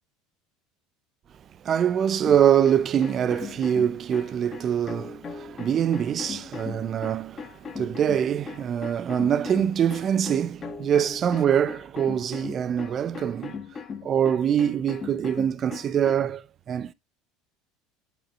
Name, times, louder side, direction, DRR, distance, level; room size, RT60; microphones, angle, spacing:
voice 1, 1.6-13.6 14.0-16.9, right 9 dB, 40° right, 0.6 m, -24 dB
sound 1, 2.2-16.3, left 5 dB, 30° left, 1.3 m, -39 dB
8.6 x 5.4 x 4.3 m
supercardioid pair, 100°, 0 cm